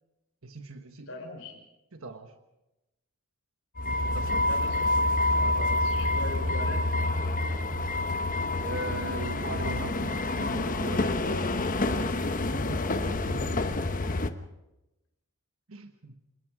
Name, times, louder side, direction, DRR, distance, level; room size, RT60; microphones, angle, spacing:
voice 1, 0.4-1.1 1.9-2.3 3.8-4.5 5.3-6.0 8.6-12.2 12.5-13.8 15.7-16.1, right 3 dB, 70° right, 7 dB, 1.3 m, -40 dB
voice 2, 1.1-1.5 4.5-5.0 5.8-6.8, left 3 dB, 65° left, 3 dB, 5.4 m, -40 dB
sound 1, 3.8-14.3, left 2 dB, 40° left, 1.0 m, -28 dB
28.5 x 18.5 x 5.0 m, 0.95 s
head